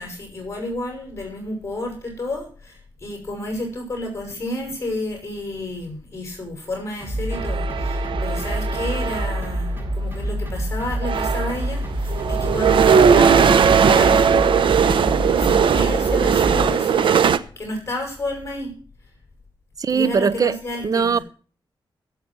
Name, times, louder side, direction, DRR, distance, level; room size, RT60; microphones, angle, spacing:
voice 1, 0.0-13.5 13.8-15.0 15.3-17.3 17.6-18.7 19.9-21.2, left 1 dB, 30° left, 6.0 m, -31 dB
sound 1, 7.0-16.7, equal, 25° right, 6.8 m, -27 dB
sound 2, 7.3-9.5 10.5-10.6 10.9-17.4, right 7 dB, 70° right, 0.9 m, -18 dB
voice 2, 19.8-20.6 20.8-21.2, right 6 dB, 40° right, 0.7 m, -20 dB
16.0 x 7.7 x 6.1 m
cardioid pair, 95°, 9 cm